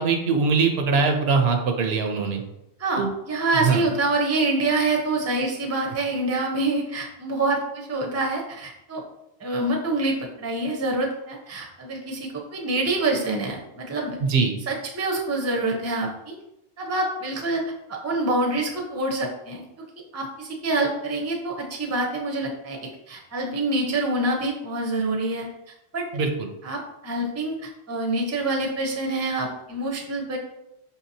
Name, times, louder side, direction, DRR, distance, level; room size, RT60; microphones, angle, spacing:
voice 1, 0.0-2.4 3.0-3.1 3.6-3.8 14.2-14.5 26.1-26.5, right 5 dB, 75° right, 5 dB, 0.8 m, -22 dB
voice 2, 2.8-9.0 9.4-14.2 14.7-16.4 16.8-19.6 20.1-22.8 23.1-25.5 25.9-26.1 26.6-30.4, right 2 dB, 20° right, 0 dB, 0.5 m, -26 dB
5.3 x 2.8 x 2.6 m, 0.86 s
omnidirectional pair, 1.1 m